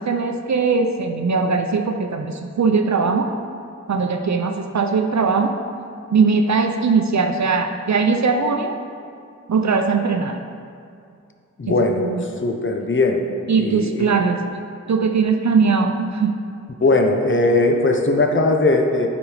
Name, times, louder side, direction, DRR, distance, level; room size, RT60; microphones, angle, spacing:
voice 1, 0.0-3.3 3.9-5.5 6.1-8.8 9.5-10.4 12.0-12.2 13.5-14.4 14.9-16.3, right 5 dB, 70° right, 5 dB, 0.6 m, -20 dB
voice 2, 11.6-12.1 12.4-13.2 13.6-14.1 16.8-19.1, left 2 dB, 40° left, 4 dB, 0.8 m, -19 dB
9.1 x 5.2 x 4.9 m, 2.4 s
wide cardioid pair, 75°, 29 cm